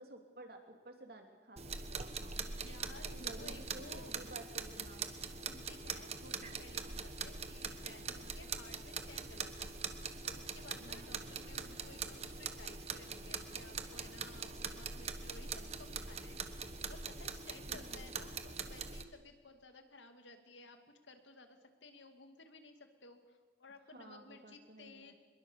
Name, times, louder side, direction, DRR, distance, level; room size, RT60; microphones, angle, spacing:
voice 1, 0.0-2.5 3.2-5.1 10.8-11.2 17.7-18.0 23.9-25.1, right 1 dB, 55° right, 3 dB, 3.3 m, -53 dB
sound 1, 1.6-19.0, right 5 dB, 35° right, 1.2 m, -43 dB
voice 2, 2.6-4.1 5.4-9.7 10.2-20.8 21.0-25.1, left 3 dB, 80° left, 6 dB, 2.4 m, -56 dB
24.5 x 22.0 x 7.0 m, 1.4 s
head